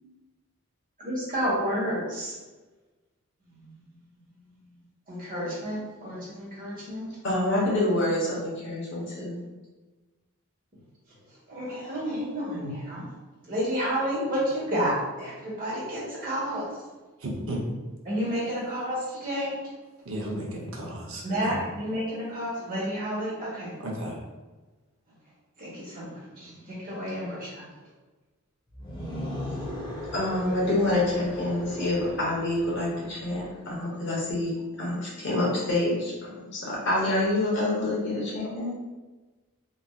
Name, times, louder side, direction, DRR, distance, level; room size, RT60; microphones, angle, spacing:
voice 1, 1.0-2.3 3.5-3.7 5.1-7.1 11.5-13.1 13.5-16.8 18.0-19.6 21.2-23.8 25.6-27.6, equal, 40° right, 1.2 m, -30 dB
voice 2, 7.2-9.4 30.1-34.5 34.8-38.7, left 1 dB, 55° left, 1.0 m, -27 dB
voice 3, 17.2-17.6 20.0-21.7 23.8-24.2, right 1 dB, 60° right, 0.7 m, -34 dB
sound 1, 28.7-33.7, left 1 dB, 20° left, 0.6 m, -38 dB
3.1 x 2.6 x 2.3 m
head